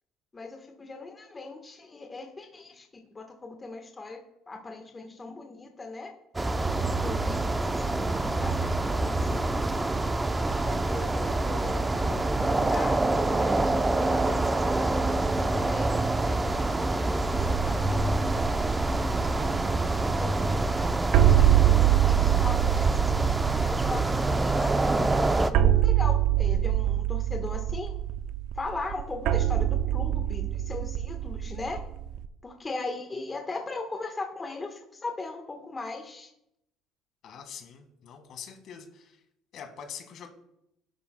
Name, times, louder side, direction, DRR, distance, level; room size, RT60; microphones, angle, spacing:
voice 1, 0.3-2.9 3.1-4.2 4.5-6.1 6.6-9.8 10.5-13.0 13.3-13.6 14.1-18.0 18.3-18.8 20.2-20.9 21.1-22.9 23.5-28.0 28.5-31.8 32.4-36.3, left 3 dB, 25° left, 3 dB, 1.3 m, -39 dB
sound 1, 6.3-25.5, right 2 dB, 15° right, 0.6 m, -26 dB
sound 2, 17.3-32.3, right 12 dB, 70° right, 0.5 m, -25 dB
voice 2, 37.2-39.2 39.5-40.3, left 7 dB, 60° left, 5 dB, 1.8 m, -44 dB
12.5 x 11.0 x 2.3 m, 0.82 s
supercardioid pair, 90°, 0 cm